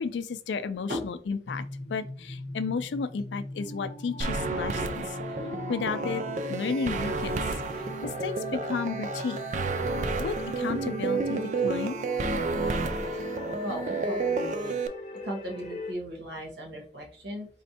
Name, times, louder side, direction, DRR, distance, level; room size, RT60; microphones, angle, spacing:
voice 1, 0.0-1.6 1.9-5.2 5.7-6.2 6.5-7.5 8.0-9.4 10.2-12.0, left 5 dB, 90° left, 11 dB, 0.4 m, -33 dB
sound 1, 1.5-15.9, left 1 dB, 35° left, 0.7 m, -39 dB
sound 2, 4.2-14.9, right 3 dB, 45° right, 0.3 m, -31 dB
voice 2, 13.6-14.8 15.1-17.5, equal, 80° right, 1 dB, 1.3 m, -37 dB
4.3 x 3.1 x 2.8 m, 0.42 s
head